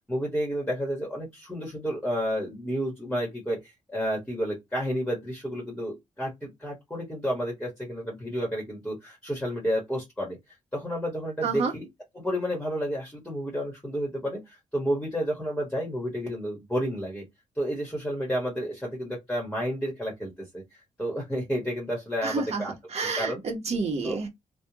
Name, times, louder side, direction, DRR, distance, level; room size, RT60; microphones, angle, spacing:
voice 1, 0.1-10.4 10.7-11.9 12.1-17.2 17.6-22.7 23.0-23.4 24.0-24.2, equal, 5° left, 1.3 m, -31 dB
voice 2, 22.2-22.6 22.9-24.3, right 4 dB, 50° right, 1.1 m, -29 dB
3.2 x 2.3 x 2.8 m
wide cardioid pair, 135°, 14 cm